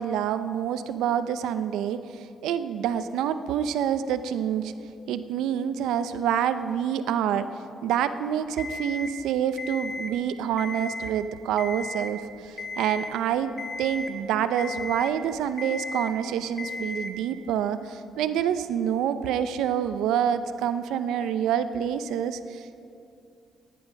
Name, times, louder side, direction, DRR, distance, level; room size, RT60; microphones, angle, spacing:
voice 1, 0.0-4.7 5.1-7.5 7.8-13.5 13.8-22.8, right 9 dB, 85° right, 11 dB, 0.6 m, -27 dB
Alarm, 8.6-9.1 9.6-10.1 10.5-11.1 11.6-12.1 12.6-13.1 13.6-14.1 14.6-15.1 15.6-16.1 16.6-17.1, left 3 dB, 40° left, 1.4 m, -35 dB
16.0 x 10.5 x 5.2 m, 2.6 s
cardioid pair, 90°, 0 cm